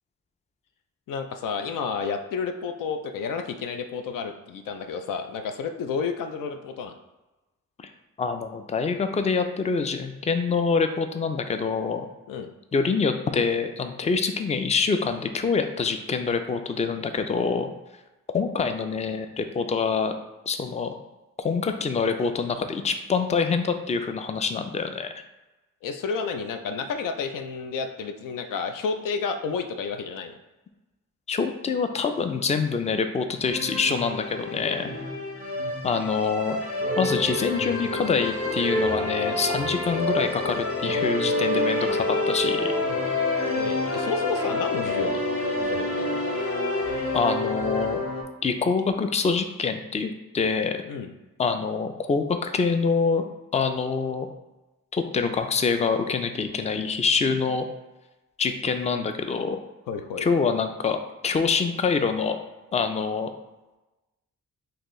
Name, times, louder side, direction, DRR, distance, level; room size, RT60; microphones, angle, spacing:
voice 1, 1.1-6.9 12.3-12.5 25.8-30.3 43.6-45.2 45.7-46.1 50.9-51.1 59.9-60.3, left 5 dB, 85° left, 7 dB, 0.5 m, -31 dB
voice 2, 8.2-12.1 12.7-17.7 18.3-20.1 20.5-20.9 21.4-25.1 31.3-34.9 35.8-36.6 37.0-42.7 47.1-48.0 48.4-50.8 51.4-53.3 53.5-54.3 54.9-57.7 58.4-59.6 60.2-61.0 61.2-62.4 62.7-63.3, left 5 dB, 20° left, 8 dB, 0.4 m, -25 dB
sound 1, 33.5-48.2, left 2 dB, 45° left, 1.2 m, -27 dB
4.2 x 2.8 x 3.1 m, 1.1 s
cardioid pair, 60°, 32 cm